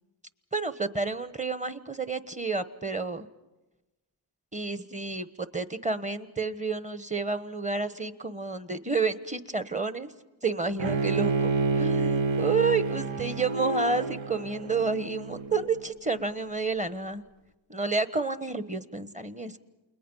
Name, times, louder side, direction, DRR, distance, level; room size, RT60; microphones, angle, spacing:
voice 1, 0.5-3.3 4.5-10.1 10.4-17.2 17.7-19.6, right 4 dB, 15° right, 12 dB, 1.3 m, -30 dB
Bowed string instrument, 10.8-15.9, right 4 dB, 75° right, 1.3 m, -29 dB
29.0 x 21.5 x 5.6 m, 1.1 s
cardioid pair, 55°, 46 cm